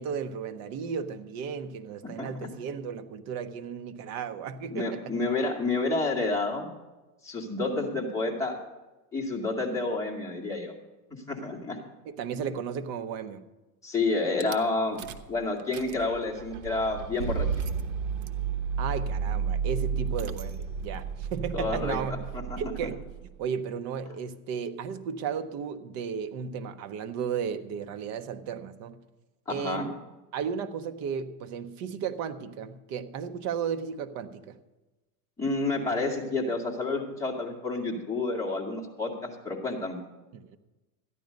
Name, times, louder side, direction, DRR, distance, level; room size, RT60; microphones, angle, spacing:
voice 1, 0.0-5.1 12.0-13.4 18.8-22.2 22.6-23.0 23.4-29.0 29.5-30.0 30.3-34.6 40.3-40.6, right 7 dB, 35° right, 9 dB, 0.8 m, -34 dB
voice 2, 2.2-2.5 4.7-6.7 7.2-8.6 9.1-10.7 11.3-11.8 13.8-15.0 15.3-17.7 21.5-22.0 22.3-22.6 29.5-29.9 35.4-40.0, left 3 dB, 5° left, -3 dB, 2.1 m, -29 dB
Rattle / Car / Engine starting, 14.4-14.6 15.0-15.3 15.6-23.3, right 6 dB, 70° right, 1.1 m, -32 dB
13.5 x 10.5 x 5.2 m, 1.1 s
supercardioid pair, 150°, 45 cm